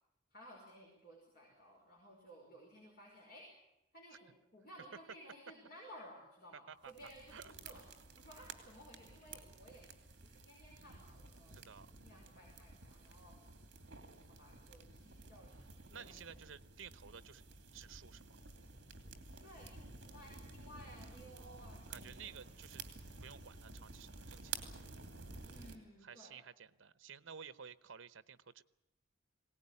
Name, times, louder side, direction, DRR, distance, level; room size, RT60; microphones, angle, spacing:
voice 1, 0.3-3.5 3.9-7.8 8.2-9.9 10.2-11.7 12.0-13.4 14.3-16.4 19.4-22.6 25.5-26.4, equal, 45° left, -3 dB, 5.3 m, -57 dB
sound 1, 6.8-25.8, right 4 dB, 60° right, 2.7 m, -52 dB
voice 2, 11.5-11.9 15.9-17.4 17.7-18.4 21.3-22.8 23.2-24.7 26.0-28.6, right 7 dB, 75° right, 15 dB, 0.9 m, -54 dB
22.0 x 18.5 x 9.8 m, 0.89 s
head